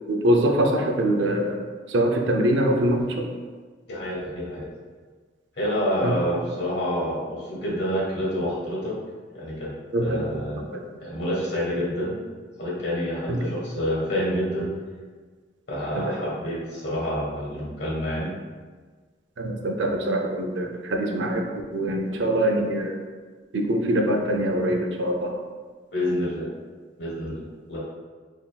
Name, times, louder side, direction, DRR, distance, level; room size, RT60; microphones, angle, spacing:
voice 1, 0.1-1.6 1.9-3.3 6.0-6.2 9.9-10.2 10.7-10.8 13.3-13.5 15.9-16.1 19.4-21.4 21.7-23.0 23.5-25.3, right 1 dB, 75° right, 2 dB, 0.5 m, -23 dB
voice 2, 3.9-4.7 5.5-8.9 9.3-9.7 10.0-10.6 11.0-12.2 12.6-14.7 15.7-18.3 22.1-22.2 25.9-26.5 27.0-27.8, equal, 65° left, -6 dB, 1.2 m, -28 dB
4.0 x 3.5 x 2.2 m, 1.5 s
head